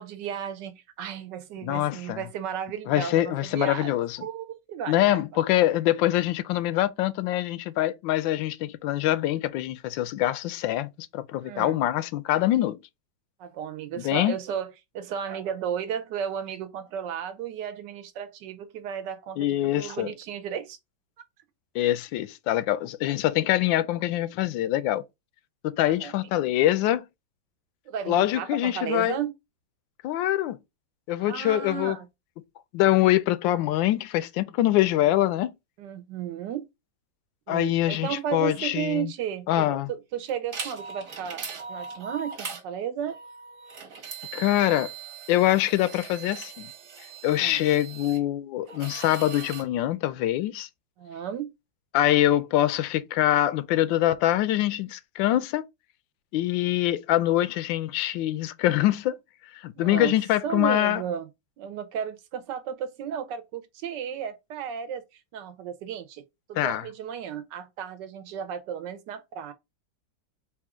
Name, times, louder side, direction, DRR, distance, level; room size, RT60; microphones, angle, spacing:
voice 1, 0.0-5.2 11.4-11.8 13.4-20.8 25.8-26.1 27.9-29.3 31.2-32.1 35.8-36.7 37.5-43.2 47.3-47.7 51.0-51.5 59.8-60.1 60.4-61.3 61.6-65.0 65.3-66.2 66.5-69.5, right 8 dB, 75° right, 1.3 m, -34 dB
voice 2, 1.6-2.2 2.9-4.2 4.9-12.8 14.0-14.4 19.4-20.1 21.7-25.1 25.6-27.1 28.1-29.2 30.0-30.6 31.1-32.0 32.7-35.5 37.5-39.1 39.5-39.9 44.3-44.9 45.3-46.7 47.2-50.7 51.9-55.6 56.3-59.2 59.5-61.0 66.6-66.8, left 14 dB, 90° left, 1.3 m, -24 dB
sound 1, 40.3-42.6 43.1-48.2 48.7-49.7, right 6 dB, 50° right, 1.3 m, -40 dB
4.2 x 2.4 x 4.7 m
omnidirectional pair, 2.0 m